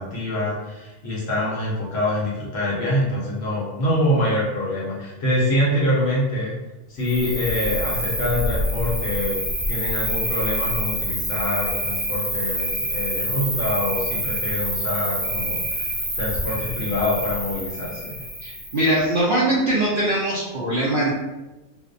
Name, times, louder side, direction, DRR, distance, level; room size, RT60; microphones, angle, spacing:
voice 1, 0.0-6.5 6.9-9.4 9.7-15.9 16.2-18.2, left 1 dB, 60° left, -5 dB, 0.8 m, -25 dB
Cricket, 7.0-19.0, right 1 dB, 10° right, 0.7 m, -27 dB
voice 2, 18.4-21.1, right 1 dB, 65° right, -7 dB, 0.5 m, -21 dB
2.4 x 2.1 x 2.5 m, 1.1 s
omnidirectional pair, 1.4 m